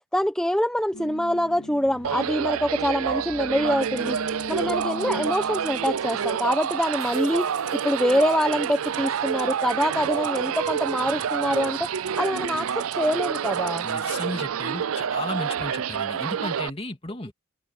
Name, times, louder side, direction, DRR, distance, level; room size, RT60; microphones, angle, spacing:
voice 1, 0.1-4.2 4.5-11.8 12.2-13.9, equal, 5° left, 0.9 m, -25 dB
sound 1, 0.9-10.0, left 1 dB, 75° left, 2.5 m, -41 dB
sound 2, 2.0-16.7, right 8 dB, 80° right, 0.5 m, -28 dB
Rattle (instrument), 3.8-14.3, right 14 dB, 55° right, 4.2 m, -44 dB
voice 2, 13.8-17.3, left 2 dB, 25° left, 2.9 m, -34 dB
head